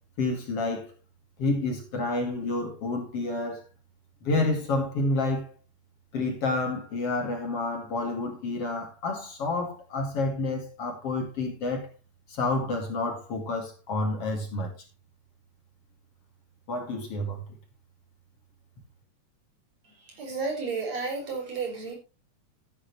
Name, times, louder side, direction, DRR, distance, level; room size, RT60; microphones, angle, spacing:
voice 1, 0.2-0.9 1.4-3.6 4.2-5.5 6.1-11.9 12.3-14.7 16.7-17.4, left 2 dB, 50° left, 3.1 m, -29 dB
voice 2, 19.8-22.0, right 4 dB, 55° right, 6.1 m, -32 dB
14.0 x 9.6 x 3.2 m
omnidirectional pair, 3.5 m